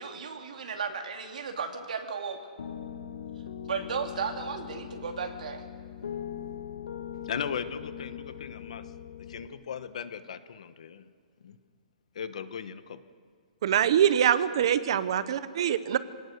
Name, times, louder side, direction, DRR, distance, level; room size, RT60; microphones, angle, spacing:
voice 1, 0.0-2.4 3.6-5.6, right 5 dB, 65° right, 4 dB, 2.7 m, -34 dB
Piano, 2.6-9.5, left 9 dB, 85° left, 1.4 m, -40 dB
voice 2, 7.3-8.8 9.3-11.0 11.4-11.5 12.1-13.0, left 7 dB, 50° left, 12 dB, 1.2 m, -37 dB
voice 3, 13.6-16.0, right 9 dB, 40° right, 14 dB, 0.9 m, -24 dB
26.0 x 18.5 x 6.7 m, 2.2 s
hypercardioid pair, 180°, 4 cm